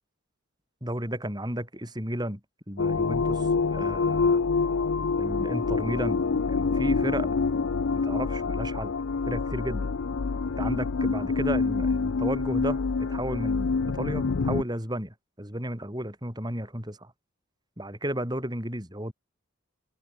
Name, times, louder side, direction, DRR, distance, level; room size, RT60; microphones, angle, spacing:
voice 1, 0.8-2.4 2.7-4.4 5.2-7.3 7.9-8.9 9.3-9.9 10.6-17.1 17.8-19.1, right 1 dB, 20° right, 7.7 m, -33 dB
sound 1, 2.8-14.6, left 4 dB, 65° left, 0.5 m, -26 dB
open air
head